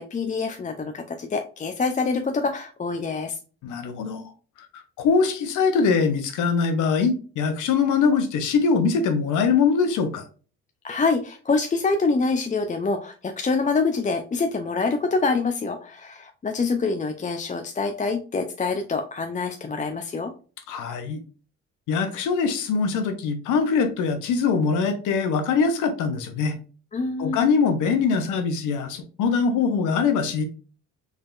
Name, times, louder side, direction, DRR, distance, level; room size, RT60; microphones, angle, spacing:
voice 1, 0.0-3.4 10.8-20.3 26.9-27.4, left 4 dB, 25° left, 6 dB, 0.5 m, -25 dB
voice 2, 3.6-4.3 4.7-10.2 20.7-21.2 21.9-26.6 27.2-30.5, left 5 dB, 90° left, 7 dB, 0.9 m, -22 dB
4.0 x 3.6 x 2.5 m, 0.37 s
cardioid pair, 90°, 30 cm